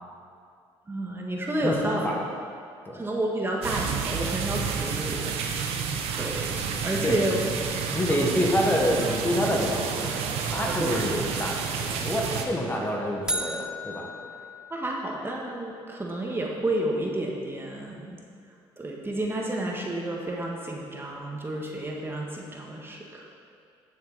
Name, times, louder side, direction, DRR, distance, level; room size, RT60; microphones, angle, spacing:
voice 1, 0.9-2.1 2.9-5.6 6.2-7.4 8.1-8.4 10.7-10.9 14.7-18.2 18.8-23.3, right 1 dB, 20° right, -1 dB, 1.6 m, -30 dB
voice 2, 1.6-2.1 2.8-3.0 7.0-7.2 7.9-14.1, equal, 20° left, -1 dB, 1.6 m, -27 dB
sound 1, 3.6-12.4, right 6 dB, 80° right, 1.0 m, -30 dB
sound 2, 13.3-15.4, equal, 5° right, 0.7 m, -35 dB
12.0 x 7.3 x 4.1 m, 2.3 s
supercardioid pair, 85°, 10 cm